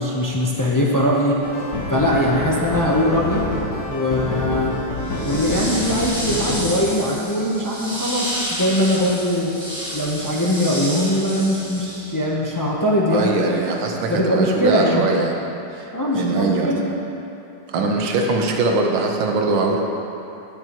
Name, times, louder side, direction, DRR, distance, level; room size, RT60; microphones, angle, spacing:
voice 1, 0.0-1.4 1.9-3.4 3.9-4.7 5.2-9.5 9.9-13.3 14.1-15.1 15.9-16.9, left 1 dB, 30° left, -4 dB, 0.3 m, -21 dB
sound 1, 1.4-6.6, left 2 dB, 45° left, 1.4 m, -27 dB
sound 2, 5.0-12.3, equal, 5° right, 1.8 m, -30 dB
voice 2, 13.1-15.3 15.7-16.7 17.7-19.8, right 3 dB, 90° right, 1 dB, 1.7 m, -21 dB
18.5 x 7.0 x 3.0 m, 3.0 s
omnidirectional pair, 2.0 m